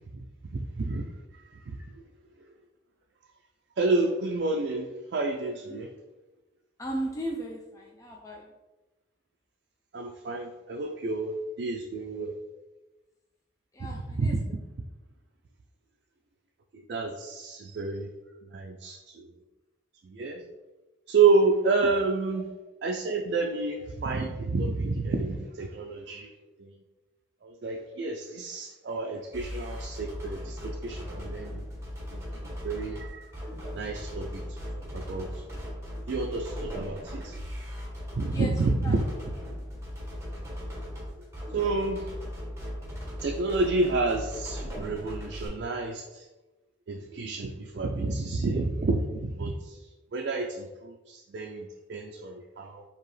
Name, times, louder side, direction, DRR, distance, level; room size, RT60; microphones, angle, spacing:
voice 1, 0.5-2.0 2.4-2.5 3.8-6.0 9.9-12.3 13.8-14.5 16.7-18.1 18.4-19.3 20.0-20.4 21.1-22.5 22.8-26.3 26.6-26.8 27.4-31.7 32.1-33.3 33.7-35.4 36.1-37.4 38.1-39.1 40.4-40.5 41.0-41.3 41.5-42.2 43.2-46.3 46.9-49.8 50.1-52.8, right 3 dB, 60° right, 1 dB, 0.4 m, -30 dB
voice 2, 6.8-8.5 13.7-14.3 38.3-38.5 38.8-38.9, right 1 dB, 20° left, 0 dB, 0.4 m, -36 dB
sound 1, 29.3-45.5, equal, 15° right, 1.1 m, -38 dB
4.7 x 2.9 x 3.2 m, 1.1 s
head